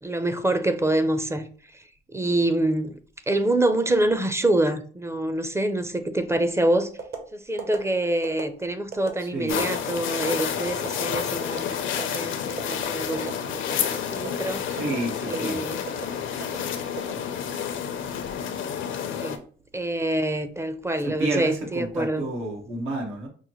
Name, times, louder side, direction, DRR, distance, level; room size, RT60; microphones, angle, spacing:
voice 1, 0.0-1.5 1.7-1.8 2.1-3.0 3.3-6.9 7.3-14.7 15.3-15.8 19.2-19.4 19.7-22.2, right 1 dB, 15° right, 0.5 m, -26 dB
sound 1, 7.0-7.2 7.6-7.8 8.2-8.5 8.9-9.1 9.6-9.8 10.2-10.4 10.8-11.0 11.4-11.6 12.0-12.2 12.6-12.7 13.1-13.4 13.7-13.9 14.2-14.4 14.8-15.0 15.3-15.5 15.9-16.1 16.4-16.6 17.0-17.6 18.0-18.3, right 6 dB, 55° right, 1.0 m, -34 dB
voice 2, 9.2-9.6 14.7-15.6 21.0-23.3, right 2 dB, 90° right, 1.5 m, -30 dB
sound 2, 9.5-19.4, left 8 dB, 75° left, 0.6 m, -30 dB
5.4 x 2.1 x 3.0 m
cardioid pair, 90°, 20 cm